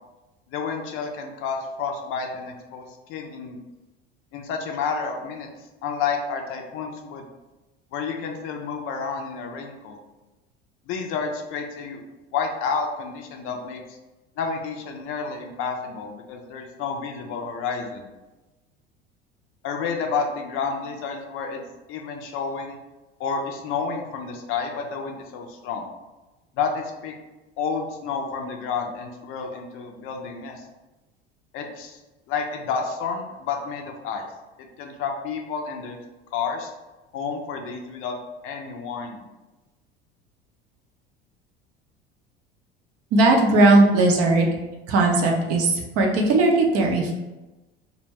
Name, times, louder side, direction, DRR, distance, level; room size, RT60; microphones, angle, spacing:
voice 1, 0.5-2.8 3.1-3.6 4.3-5.5 5.8-7.3 7.9-10.0 10.9-12.0 12.3-13.8 14.4-18.1 19.6-21.6 21.9-22.8 23.2-25.9 26.5-27.1 27.6-30.6 31.5-32.0 32.3-34.3 34.6-36.0 36.3-36.7 37.1-38.2 38.4-39.3, left 5 dB, 45° left, 3 dB, 0.5 m, -30 dB
voice 2, 43.1-44.5 44.9-47.1, right 2 dB, 45° right, 1 dB, 0.6 m, -18 dB
2.2 x 2.1 x 3.3 m, 1.1 s
figure-of-eight pair, 70°, 32 cm